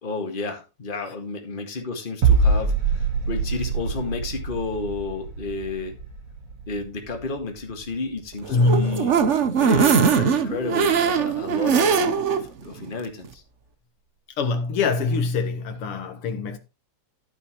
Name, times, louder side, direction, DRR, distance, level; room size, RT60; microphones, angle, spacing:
voice 1, 0.0-6.0 6.7-9.1 9.6-12.0 12.3-13.4, left 3 dB, 25° left, 1.8 m, -31 dB
sound 1, 2.2-7.9 8.2-8.4, right 4 dB, 75° right, 3.2 m, -24 dB
sound 2, 8.4-12.4 12.8-12.9 13.2-13.3, right 6 dB, 50° right, 0.8 m, -21 dB
voice 2, 8.5-9.0 14.4-16.6, left 3 dB, 85° left, 2.4 m, -23 dB
12.0 x 8.1 x 3.0 m
omnidirectional pair, 2.4 m